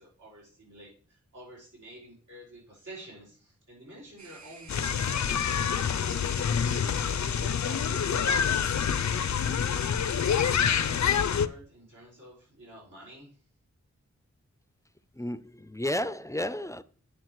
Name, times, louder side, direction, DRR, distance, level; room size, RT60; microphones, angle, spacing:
voice 1, 0.0-9.4 10.0-13.4, right 1 dB, 85° right, 5.0 m, -50 dB
sound 1, 4.2-10.7, right 4 dB, 70° right, 1.0 m, -50 dB
sound 2, 4.7-11.5, left 7 dB, 75° left, 0.5 m, -27 dB
voice 2, 15.2-16.8, left 1 dB, 10° left, 0.4 m, -32 dB
9.4 x 7.2 x 3.1 m
wide cardioid pair, 70°, 29 cm